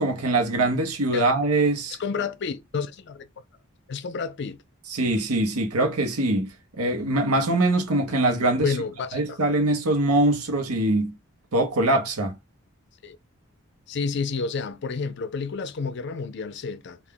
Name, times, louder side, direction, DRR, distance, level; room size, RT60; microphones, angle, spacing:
voice 1, 0.0-2.0 4.9-6.5 6.8-8.7 9.1-11.1 11.5-12.4, right 2 dB, 90° right, 1.0 m, -23 dB
voice 2, 2.0-3.3 3.9-4.6 8.6-9.4 13.0-13.2 13.9-17.0, left 5 dB, 50° left, 0.4 m, -30 dB
3.4 x 2.4 x 3.7 m
head